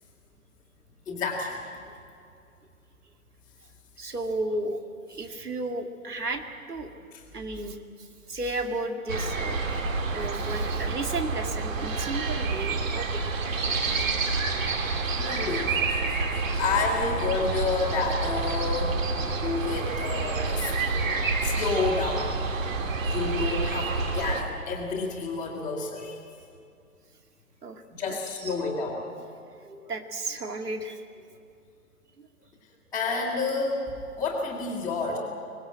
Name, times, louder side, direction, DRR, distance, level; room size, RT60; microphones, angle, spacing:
voice 1, 1.1-1.6 7.1-7.2 9.8-10.2 15.2-19.0 19.3-22.3 23.0-26.2 28.0-29.0 32.9-33.8 34.2-35.2, left 4 dB, 5° left, -8 dB, 2.2 m, -30 dB
voice 2, 4.0-6.4 6.7-6.9 7.3-9.6 10.1-13.2 14.7-14.8 27.6-27.8 28.1-28.5 29.6-31.0 32.2-32.3, right 2 dB, 80° right, 5 dB, 2.5 m, -33 dB
sound 1, 9.1-24.4, right 3 dB, 60° right, 2.6 m, -28 dB
24.5 x 19.5 x 7.7 m, 2.5 s
figure-of-eight pair, 135°, 45 cm